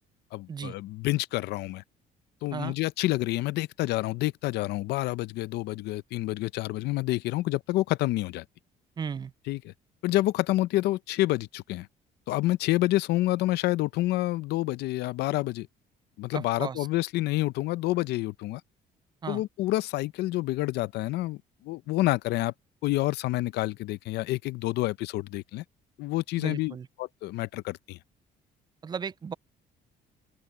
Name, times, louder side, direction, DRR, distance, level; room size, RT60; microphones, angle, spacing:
voice 1, 0.3-1.8 2.4-8.4 9.5-9.7 10.0-11.9 12.3-15.7 16.2-18.6 19.3-22.5 22.8-25.6 26.0-28.0, left 17 dB, 80° left, 0.6 m, -28 dB
voice 2, 9.0-9.3 16.3-16.9 19.2-19.4 26.4-26.9 28.8-29.3, right 6 dB, 25° right, 0.4 m, -35 dB
open air
cardioid pair, 110°, 17 cm